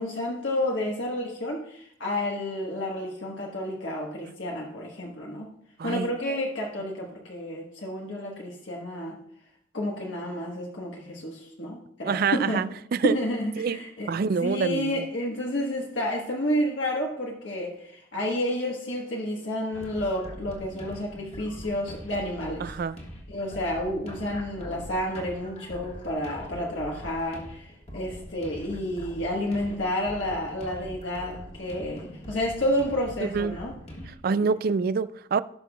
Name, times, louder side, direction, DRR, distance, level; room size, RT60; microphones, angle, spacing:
voice 1, 0.0-5.5 5.8-9.1 9.7-12.6 13.0-14.1 14.4-22.7 23.3-33.7, left 1 dB, 65° left, 1.3 m, -30 dB
voice 2, 5.8-6.1 12.1-13.2 13.6-13.8 14.1-15.0 22.6-23.0 33.2-33.6 34.1-35.4, right 5 dB, 50° right, 0.3 m, -26 dB
sound 1, 19.7-34.1, equal, 30° left, 1.5 m, -43 dB
17.0 x 5.9 x 2.3 m
head